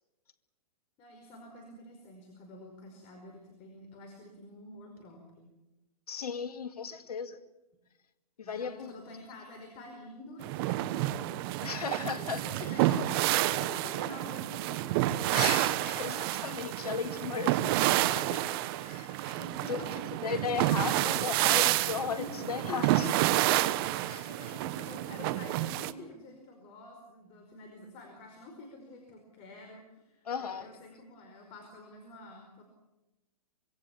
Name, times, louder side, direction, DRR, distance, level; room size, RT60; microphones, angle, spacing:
voice 1, 1.0-5.5 8.4-15.2 18.6-18.9 19.4-20.1 22.2-22.4 22.7-22.8 23.8-32.6, left 2 dB, 30° left, 3 dB, 5.0 m, -48 dB
voice 2, 6.1-7.4 8.4-8.9 11.6-12.7 15.3-19.8 20.2-23.1 23.9-24.6 30.2-30.7, left 6 dB, 75° left, 8 dB, 2.2 m, -36 dB
sound 1, 10.4-25.9, right 16 dB, 40° right, 1.2 m, -29 dB
25.5 x 23.0 x 7.2 m, 1.0 s
hypercardioid pair, 130°, 20 cm